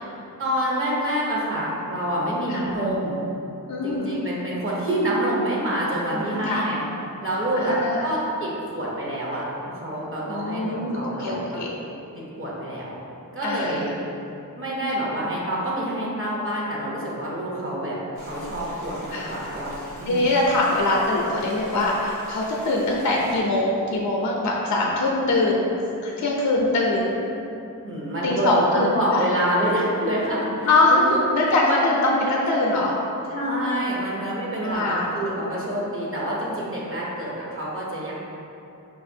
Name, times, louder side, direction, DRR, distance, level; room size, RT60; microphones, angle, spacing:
voice 1, 0.4-3.2 3.8-6.8 7.2-11.4 11.7-11.8 12.4-12.9 13.3-14.0 14.6-18.0 18.2-19.7 20.0-20.3 27.8-31.2 31.7-31.8 32.2-32.4 33.3-38.1, right 1 dB, 40° right, -5 dB, 0.7 m, -27 dB
voice 2, 3.7-4.1 6.4-6.6 7.6-8.0 10.3-11.8 13.4-13.8 19.1-19.3 20.1-25.7 26.0-27.2 28.2-29.2 30.6-30.9 31.3-33.0 34.6-35.0, left 2 dB, 60° left, -3 dB, 0.5 m, -23 dB
sound 1, 18.1-23.4, equal, 75° right, 1.3 m, -44 dB
4.7 x 2.5 x 2.6 m, 2.8 s
wide cardioid pair, 85°, 33 cm